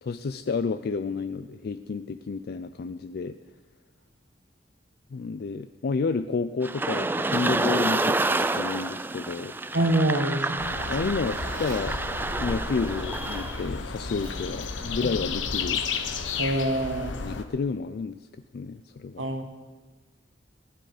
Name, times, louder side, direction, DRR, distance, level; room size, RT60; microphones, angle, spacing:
voice 1, 0.0-3.4 5.1-9.5 10.9-12.0 12.4-15.8 17.2-18.3 18.5-19.3, left 4 dB, 55° left, 10 dB, 0.4 m, -30 dB
sound 1, 6.6-13.7, right 2 dB, 10° right, 0.3 m, -29 dB
voice 2, 9.7-10.7 16.4-17.1 19.2-19.4, right 1 dB, 85° right, 5 dB, 1.6 m, -25 dB
sound 2, 10.6-17.4, left 5 dB, 85° left, 1.0 m, -33 dB
Drawer open or close, 10.8-12.0 13.2-13.5 13.9-15.3, right 1 dB, 45° right, 2.2 m, -43 dB
16.0 x 10.0 x 5.0 m, 1.3 s
head